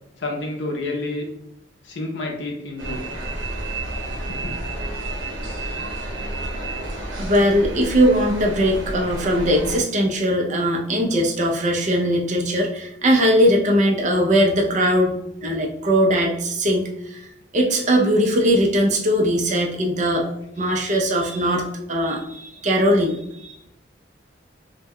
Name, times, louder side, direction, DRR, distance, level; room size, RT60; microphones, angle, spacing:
voice 1, 0.2-1.3 1.8-3.0 4.3-4.6, left 2 dB, 70° left, 1 dB, 0.5 m, -29 dB
sound 1, 2.8-9.8, right 2 dB, 80° right, 0.8 m, -30 dB
voice 2, 7.2-17.3 17.5-20.3 20.6-23.5, equal, 40° right, 1 dB, 0.5 m, -20 dB
2.1 x 2.1 x 3.4 m, 0.78 s
head